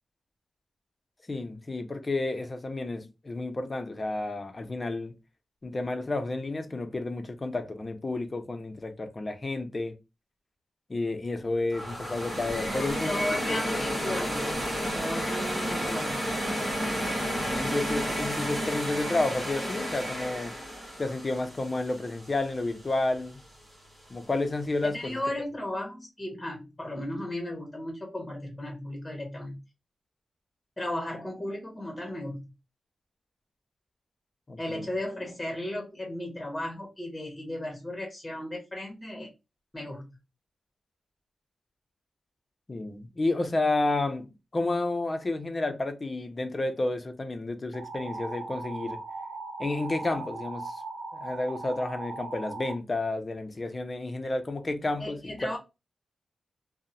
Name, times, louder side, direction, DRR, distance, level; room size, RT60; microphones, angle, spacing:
voice 1, 1.3-5.2 5.6-10.0 10.9-13.2 14.0-14.3 16.9-17.1 17.4-20.5 21.0-23.4 24.1-25.2 34.5-34.9 42.7-44.3 44.5-49.0 49.6-50.8 51.1-55.5, left 2 dB, 30° left, 0.5 m, -31 dB
sound 1, 11.7-22.7, equal, 30° right, 1.5 m, -32 dB
voice 2, 12.7-14.5 14.9-16.2 24.8-29.6 30.8-32.4 34.6-39.3 39.7-40.1 55.0-55.6, left 1 dB, 15° left, 1.0 m, -35 dB
sound 2, 47.7-52.8, right 3 dB, 85° right, 0.7 m, -38 dB
2.8 x 2.0 x 2.5 m
wide cardioid pair, 120°, 0 cm